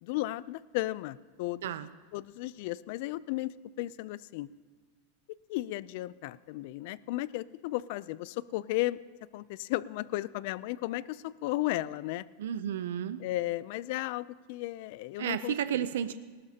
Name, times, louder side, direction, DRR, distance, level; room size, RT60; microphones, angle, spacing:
voice 1, 0.0-1.7 2.1-4.5 5.5-9.0 9.3-12.3 13.2-15.5, left 17 dB, 50° left, 18 dB, 0.4 m, -34 dB
voice 2, 12.4-13.2 15.2-16.1, right 10 dB, 85° right, 12 dB, 0.6 m, -32 dB
19.5 x 18.5 x 2.8 m, 1.5 s
supercardioid pair, 160°, 0 cm